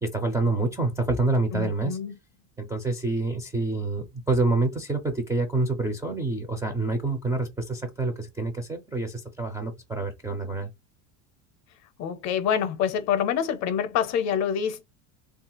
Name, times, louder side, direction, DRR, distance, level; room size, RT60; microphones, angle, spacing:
voice 1, 0.0-2.0 2.6-10.7, right 2 dB, 10° right, 0.4 m, -27 dB
voice 2, 1.5-2.1 12.0-14.8, left 8 dB, 45° left, 0.6 m, -26 dB
3.2 x 2.4 x 2.8 m
supercardioid pair, 140°, 40 cm